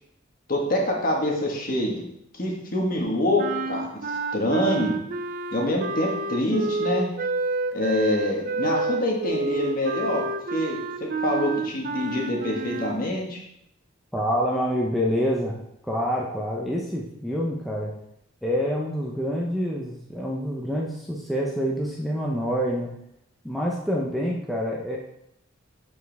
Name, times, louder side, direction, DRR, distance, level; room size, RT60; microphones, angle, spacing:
voice 1, 0.5-2.0 2.3-3.9 4.3-5.0 5.5-7.1 7.7-10.2 10.5-13.4, left 1 dB, 40° left, -1 dB, 1.6 m, -25 dB
sound 1, 3.4-13.0, right 3 dB, 40° right, 0.5 m, -29 dB
voice 2, 14.1-15.6 15.9-17.9 18.4-22.9 23.4-25.0, equal, ahead, -4 dB, 0.7 m, -27 dB
7.1 x 6.4 x 3.5 m, 0.75 s
head